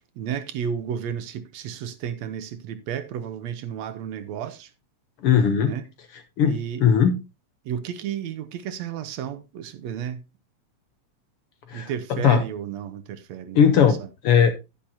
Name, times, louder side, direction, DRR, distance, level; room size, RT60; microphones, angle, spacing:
voice 1, 0.0-4.7 5.6-5.9 6.4-6.9 7.7-10.2 11.7-14.1, right 8 dB, 75° right, 2.0 m, -32 dB
voice 2, 5.2-5.7 6.4-6.5 6.8-7.2 11.7-11.9 12.2-12.4 13.5-14.0 14.2-14.5, left 7 dB, 65° left, 1.6 m, -17 dB
10.5 x 10.5 x 2.8 m
omnidirectional pair, 3.3 m